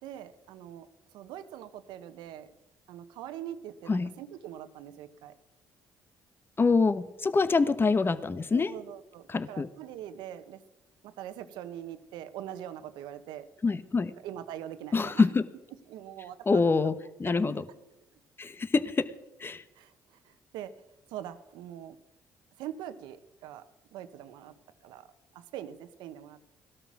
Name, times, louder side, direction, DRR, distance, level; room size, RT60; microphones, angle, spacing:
voice 1, 0.0-0.9 1.1-2.5 2.9-5.3 8.5-10.6 11.0-13.5 14.2-15.4 15.9-16.6 17.2-17.6 19.7-20.8 21.1-22.0 22.6-24.5 24.8-25.1 25.3-26.5, right 11 dB, 80° right, 11 dB, 1.1 m, -43 dB
voice 2, 6.6-8.7 9.3-9.7 13.6-14.1 14.9-15.4 16.5-16.9 17.2-17.6 18.4-19.1 19.4-19.6, left 4 dB, 30° left, 13 dB, 1.1 m, -25 dB
17.5 x 12.5 x 6.2 m, 0.96 s
supercardioid pair, 65°, 7 cm